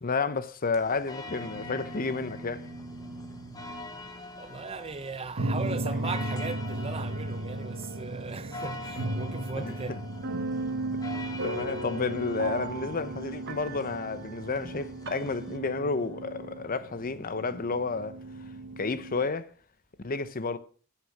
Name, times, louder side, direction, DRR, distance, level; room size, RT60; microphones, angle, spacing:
voice 1, 0.0-2.6 9.6-9.7 11.4-18.2 18.8-19.5 20.0-20.6, left 4 dB, 40° left, 0.8 m, -31 dB
sound 1, 0.7-15.6, left 2 dB, 15° left, 1.1 m, -45 dB
sound 2, 1.3-3.9 5.4-19.3, right 2 dB, 55° right, 1.1 m, -36 dB
voice 2, 4.4-10.1 11.4-11.5, right 4 dB, 30° right, 0.6 m, -38 dB
10.0 x 8.0 x 7.1 m
head